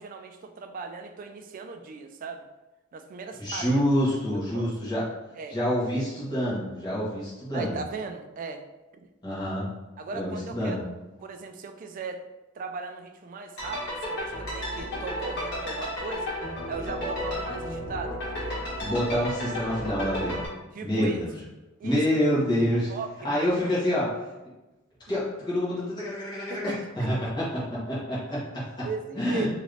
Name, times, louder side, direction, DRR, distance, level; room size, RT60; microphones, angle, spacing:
voice 1, 0.0-2.5 2.9-3.8 4.3-4.7 5.4-5.6 7.5-8.6 8.9-9.1 10.0-10.9 11.2-12.2 12.6-16.3 16.7-18.6 20.7-21.2 21.8-22.0 22.9-23.5 26.5-27.3 28.8-29.5, right 4 dB, 40° right, 6 dB, 0.3 m, -37 dB
voice 2, 3.4-5.0 5.5-7.8 9.2-9.7 10.1-10.8 18.8-20.4 20.8-21.3 21.8-22.9 23.2-24.1 25.1-28.9 29.1-29.5, equal, 20° left, -8 dB, 1.1 m, -27 dB
sound 1, 13.6-20.5, equal, 55° left, 1.2 m, -33 dB
3.0 x 2.5 x 3.2 m, 1.1 s
head